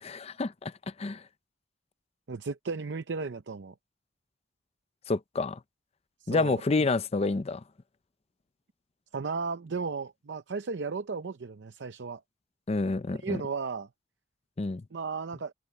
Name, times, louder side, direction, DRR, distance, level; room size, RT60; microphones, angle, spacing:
voice 1, 0.0-0.7 1.0-1.2 5.1-5.6 6.3-7.6 12.7-13.4 14.6-14.8, left 3 dB, 35° left, 0.5 m, -28 dB
voice 2, 2.3-3.7 6.2-6.6 9.1-12.2 13.1-13.9 14.9-15.5, right 4 dB, 85° right, 0.6 m, -35 dB
head